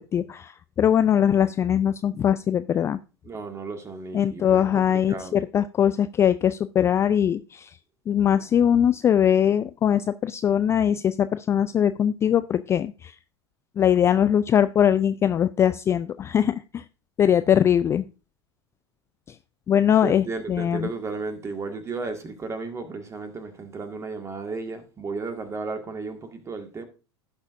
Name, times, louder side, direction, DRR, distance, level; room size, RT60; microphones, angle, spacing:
voice 1, 0.1-3.0 4.1-7.8 8.1-13.2 13.8-16.8 17.2-18.1 19.3-19.4 19.7-20.9, left 9 dB, 20° left, 0.3 m, -21 dB
voice 2, 3.2-5.4 20.0-26.8, right 4 dB, 20° right, 1.7 m, -34 dB
16.0 x 6.1 x 2.6 m
figure-of-eight pair, 85°, 14 cm